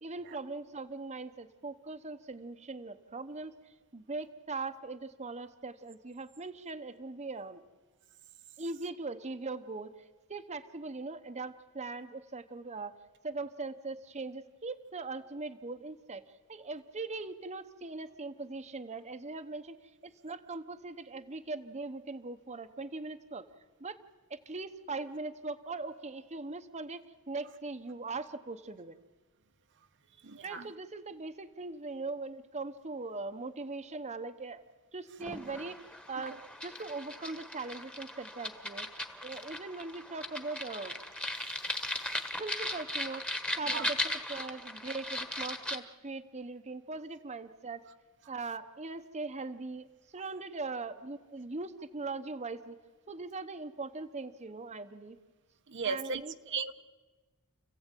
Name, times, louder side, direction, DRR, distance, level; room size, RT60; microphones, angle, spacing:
voice 1, 0.0-7.6 8.6-13.0 13.2-16.2 16.5-19.8 20.0-23.5 23.8-24.0 24.3-29.0 30.4-34.6 34.9-36.3 36.6-38.9 39.2-41.0 42.4-43.3 43.6-47.8 48.3-52.8 53.1-55.2 55.8-56.6, right 3 dB, 30° right, 9 dB, 0.9 m, -40 dB
voice 2, 30.2-30.7 43.7-43.9 55.7-56.2 56.5-56.7, right 5 dB, 55° right, 8 dB, 0.9 m, -35 dB
sound 1, 35.2-45.8, left 1 dB, 5° left, 1.3 m, -38 dB
29.5 x 15.5 x 9.1 m, 1.3 s
head